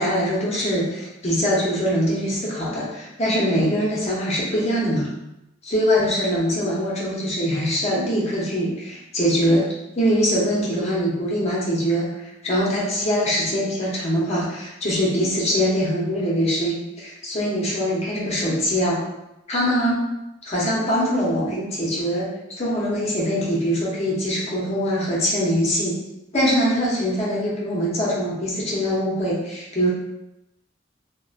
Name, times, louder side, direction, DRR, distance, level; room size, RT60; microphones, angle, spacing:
voice 1, 0.0-5.1 5.7-9.7 10.0-12.1 12.4-19.0 19.5-20.0 20.4-22.3 22.6-26.0 26.3-29.9, equal, 35° left, -5 dB, 0.7 m, -23 dB
2.7 x 2.1 x 2.4 m, 0.90 s
head